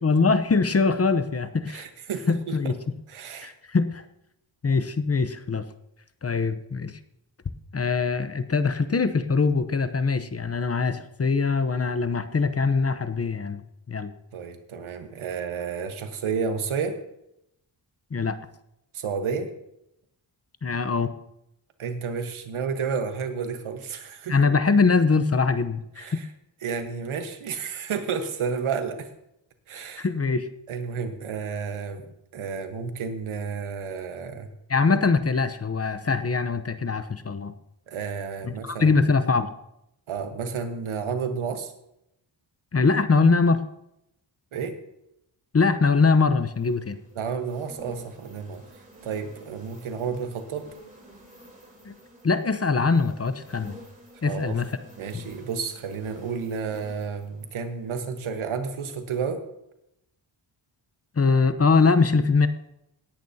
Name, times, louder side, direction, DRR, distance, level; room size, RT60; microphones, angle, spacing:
voice 1, 0.0-1.8 2.3-2.7 3.4-4.1 4.6-5.6 6.2-7.0 7.7-14.1 18.1-18.4 20.6-21.1 24.3-26.2 30.0-30.5 34.7-37.5 38.4-39.5 42.7-43.6 45.5-47.0 51.8-52.0 52.2-53.8 54.2-54.7 55.1-55.2 61.2-62.5, left 4 dB, 30° left, 11 dB, 0.8 m, -22 dB
voice 2, 1.7-2.7 3.1-3.5 14.3-17.0 18.9-19.5 21.8-24.4 26.0-26.3 26.6-29.1 29.7-30.1 30.7-34.5 37.9-39.0 40.1-41.7 44.5-44.8 47.1-48.6 49.0-50.7 54.2-54.6 55.0-59.4, right 6 dB, 90° right, 7 dB, 1.4 m, -31 dB
sound 1, 46.4-58.6 59.0-59.2, right 1 dB, 15° right, 3.6 m, -51 dB
17.5 x 10.5 x 2.8 m, 0.81 s
cardioid pair, 75°, 48 cm